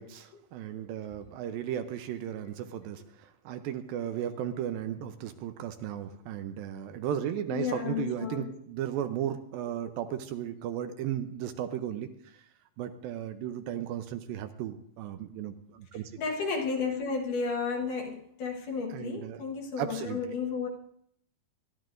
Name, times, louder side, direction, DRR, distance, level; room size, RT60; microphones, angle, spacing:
voice 1, 0.0-12.1 12.8-16.2 18.9-19.4 19.8-20.2, right 10 dB, 80° right, 2.4 m, -35 dB
voice 2, 7.5-8.5 16.2-20.7, left 5 dB, 65° left, 2.8 m, -32 dB
23.0 x 11.5 x 2.6 m
omnidirectional pair, 4.4 m